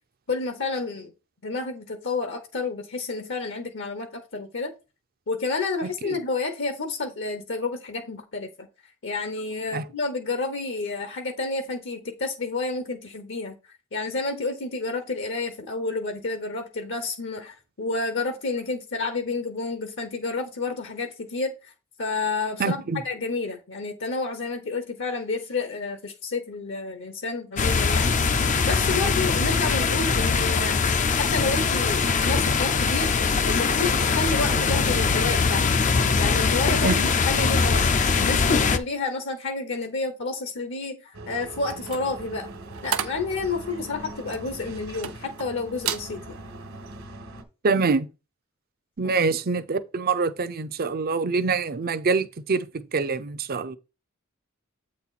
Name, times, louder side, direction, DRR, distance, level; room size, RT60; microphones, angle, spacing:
voice 1, 0.3-1.1 1.4-4.7 5.3-8.7 9.0-13.5 13.9-21.7 22.0-28.2 28.6-33.1 33.4-35.7 36.2-37.9 38.2-42.5 42.8-46.2 49.0-49.1, left 3 dB, 60° left, 1.0 m, -30 dB
voice 2, 22.6-23.0 36.8-37.0 47.6-48.1 49.0-53.8, right 4 dB, 45° right, 0.6 m, -25 dB
sound 1, 27.6-38.8, left 5 dB, 35° left, 0.5 m, -22 dB
sound 2, 41.1-47.4, right 2 dB, 70° right, 1.5 m, -41 dB
sound 3, 41.6-45.5 45.8-46.1 46.6-46.8, right 9 dB, 90° right, 0.8 m, -33 dB
8.0 x 4.2 x 4.1 m
head